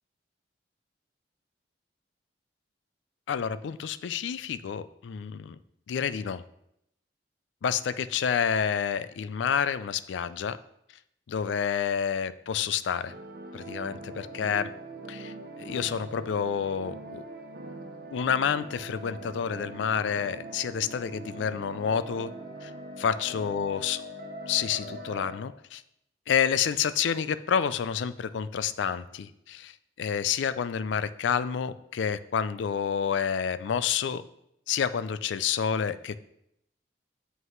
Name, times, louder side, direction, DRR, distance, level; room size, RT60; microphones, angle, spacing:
voice 1, 3.3-5.6 5.9-6.4 7.6-10.6 11.3-13.1 13.5-14.7 15.1-17.2 18.1-22.3 22.6-22.7 23.0-24.0 24.5-25.8 26.3-29.7 30.0-34.2 34.7-36.2, left 7 dB, 80° left, 14 dB, 0.3 m, -29 dB
sound 1, 13.1-25.3, right 2 dB, 50° right, 0.6 m, -42 dB
Wind instrument woodwind instrument, 21.9-25.5, left 8 dB, 60° left, 2.7 m, -46 dB
7.6 x 5.4 x 3.1 m, 0.77 s
head